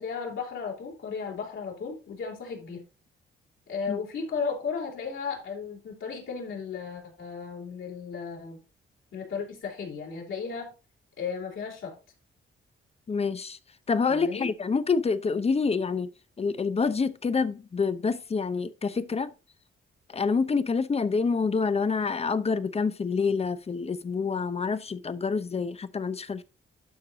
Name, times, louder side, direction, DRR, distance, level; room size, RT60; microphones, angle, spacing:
voice 1, 0.0-2.8 3.7-8.6 9.1-10.7 11.2-11.9 14.1-14.5, left 5 dB, 70° left, 4.0 m, -35 dB
voice 2, 13.1-13.6 13.9-16.1 16.4-19.3 20.1-26.4, left 5 dB, 30° left, 0.7 m, -27 dB
12.0 x 4.7 x 4.0 m
cardioid pair, 95°, 21 cm